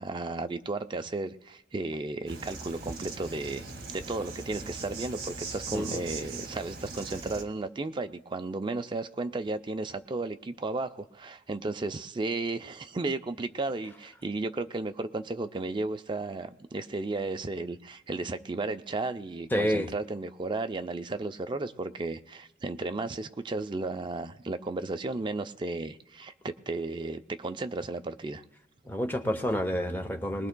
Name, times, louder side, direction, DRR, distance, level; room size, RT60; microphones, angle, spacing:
voice 1, 0.0-3.7 3.9-28.4, right 3 dB, 25° right, 8 dB, 0.4 m, -34 dB
Insect, 2.3-7.4, right 3 dB, 55° right, 1.8 m, -40 dB
voice 2, 19.5-19.9 28.9-30.5, equal, 10° left, 6 dB, 0.7 m, -29 dB
21.5 x 19.5 x 2.2 m, 0.96 s
head